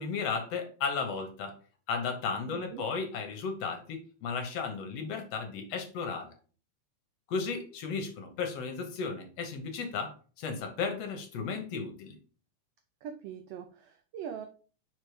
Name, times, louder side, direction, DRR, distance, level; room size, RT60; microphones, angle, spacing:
voice 1, 0.0-1.5 1.9-6.3 7.3-12.2, left 5 dB, 65° left, 5 dB, 1.9 m, -34 dB
voice 2, 2.5-2.8 13.0-14.5, right 8 dB, 85° right, 6 dB, 1.3 m, -42 dB
4.8 x 4.6 x 4.7 m, 0.39 s
omnidirectional pair, 3.4 m